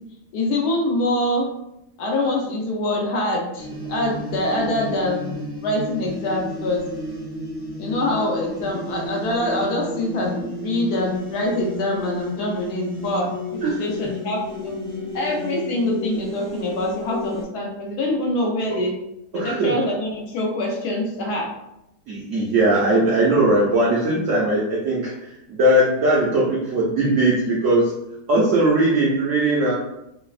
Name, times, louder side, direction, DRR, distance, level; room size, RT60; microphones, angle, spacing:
voice 1, 0.3-1.5 2.0-5.4 5.6-6.8 7.8-14.7 15.1-18.9 19.3-21.5, left 1 dB, 70° left, 0 dB, 1.0 m, -24 dB
sound 1, 3.6-17.4, equal, 30° right, 0.8 m, -32 dB
voice 2, 13.6-14.1 19.3-19.7 22.1-25.1 25.5-27.9 28.3-29.7, right 1 dB, 85° right, -4 dB, 0.6 m, -19 dB
3.2 x 2.0 x 2.3 m, 0.87 s
omnidirectional pair, 1.9 m